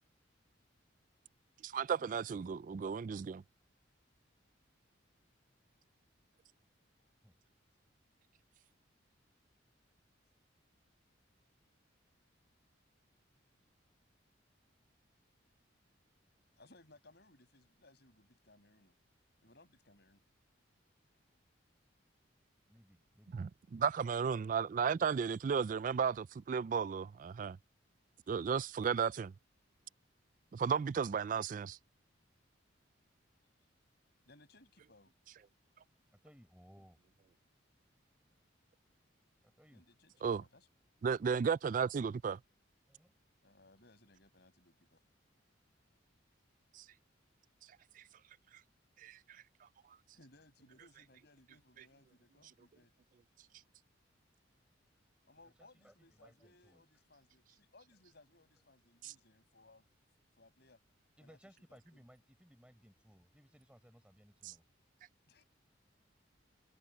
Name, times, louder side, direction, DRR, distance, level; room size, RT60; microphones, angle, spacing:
voice 1, 1.6-3.4 23.3-27.6 28.3-29.3 30.5-31.8 40.2-40.4 41.0-42.4 46.7-46.8 48.0-48.1 49.0-49.4 59.0-59.1 64.4-64.5, right 6 dB, 40° right, 0.3 m, -34 dB
voice 2, 16.6-18.9 19.4-20.2 34.3-35.1 39.7-40.1 40.4-40.7 43.4-45.0 50.1-52.9 55.2-59.9 60.4-60.8 61.2-61.4 61.7-62.0 65.3-65.4, left 2 dB, 55° left, 7.0 m, -64 dB
voice 3, 22.7-23.5 36.1-37.0 39.4-39.8 42.9-43.1 55.4-56.8 61.2-64.6, equal, 5° right, 4.6 m, -62 dB
open air
head